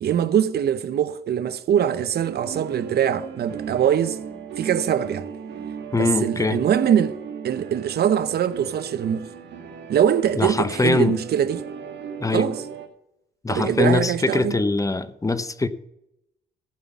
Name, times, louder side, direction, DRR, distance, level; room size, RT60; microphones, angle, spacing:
voice 1, 0.0-4.2 4.6-5.3 6.0-7.2 7.4-9.3 9.9-11.6 12.3-12.6 13.5-14.6, right 9 dB, 65° right, 0.8 m, -22 dB
sound 1, 2.2-12.9, right 6 dB, 85° right, 1.7 m, -37 dB
voice 2, 5.9-6.6 10.4-11.1 12.2-12.5 13.4-15.7, left 3 dB, 20° left, 0.7 m, -22 dB
15.0 x 5.5 x 7.2 m
cardioid pair, 85°, 18 cm